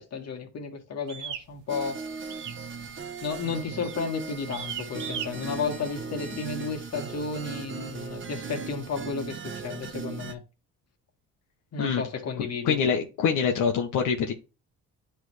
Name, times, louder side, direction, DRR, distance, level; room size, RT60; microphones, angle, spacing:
voice 1, 0.0-2.0 3.2-10.4 11.7-12.8, left 5 dB, 55° left, 1.8 m, -33 dB
sound 1, 1.1-1.5 2.3-2.7 2.9-3.3 3.8-4.0 4.5-5.3, right 9 dB, 85° right, 1.1 m, -36 dB
sound 2, 1.7-10.3, right 5 dB, 40° right, 1.1 m, -38 dB
voice 2, 12.6-14.3, left 6 dB, 85° left, 1.0 m, -25 dB
10.0 x 3.4 x 3.1 m
cardioid pair, 90°, 30 cm